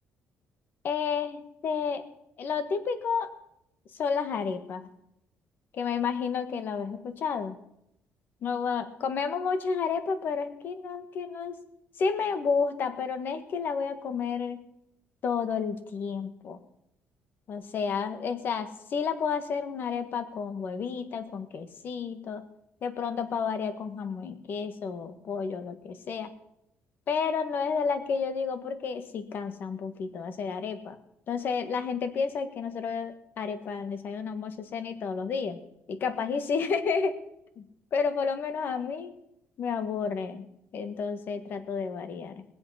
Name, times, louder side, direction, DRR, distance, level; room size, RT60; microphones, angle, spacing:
voice 1, 0.8-2.0 2.4-3.3 4.0-4.9 5.7-7.6 8.4-11.5 12.0-14.6 15.2-16.6 17.5-22.4 22.8-26.3 27.1-30.9 31.3-35.6 35.9-37.2 37.6-37.7 37.9-39.1 39.6-40.4 40.7-42.4, left 5 dB, 50° left, 10 dB, 1.5 m, -31 dB
21.5 x 7.8 x 5.7 m, 0.79 s
cardioid pair, 140°, 4 cm